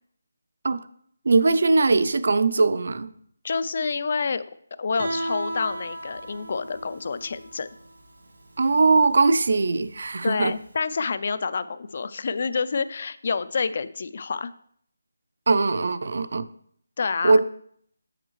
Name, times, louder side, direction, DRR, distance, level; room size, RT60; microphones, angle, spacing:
voice 1, 1.3-3.1 8.6-10.5 15.5-16.5 17.2-17.5, right 3 dB, 55° right, 14 dB, 0.4 m, -20 dB
voice 2, 3.4-4.4 4.8-7.7 10.2-14.5 17.0-17.4, left 5 dB, 40° left, 15 dB, 0.3 m, -28 dB
Guitar, 5.0-10.7, right 1 dB, 75° right, 1.6 m, -36 dB
7.8 x 6.4 x 3.1 m, 0.65 s
figure-of-eight pair, 175°, 0 cm